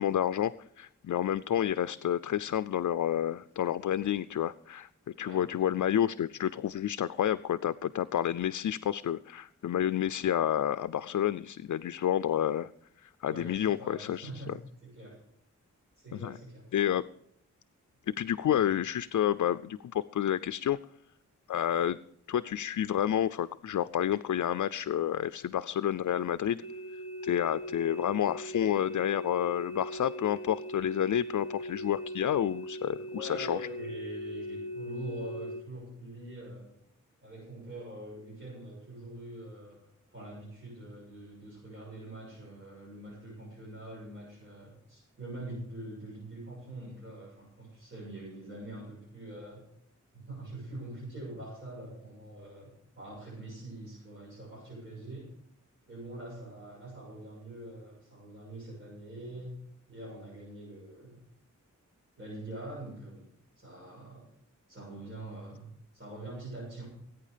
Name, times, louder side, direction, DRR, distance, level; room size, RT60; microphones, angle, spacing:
voice 1, 0.0-4.9 5.2-12.7 13.0-14.4 16.1-16.4 16.7-17.0 18.1-20.8 21.5-22.0 22.3-26.6 27.2-33.6, left 10 dB, 75° left, 13 dB, 0.4 m, -29 dB
voice 2, 13.3-14.5 14.8-15.2 15.9-16.8 18.5-18.6 33.1-36.7 37.2-39.8 40.1-49.6 50.1-55.3 55.9-59.5 59.9-61.2 62.2-63.3 63.6-64.3 64.7-66.8, right 1 dB, 40° right, -7 dB, 7.2 m, -44 dB
sound 1, 26.6-35.6, equal, 85° right, 1.5 m, -39 dB
20.0 x 9.2 x 5.0 m, 0.73 s
wide cardioid pair, 130°, 31 cm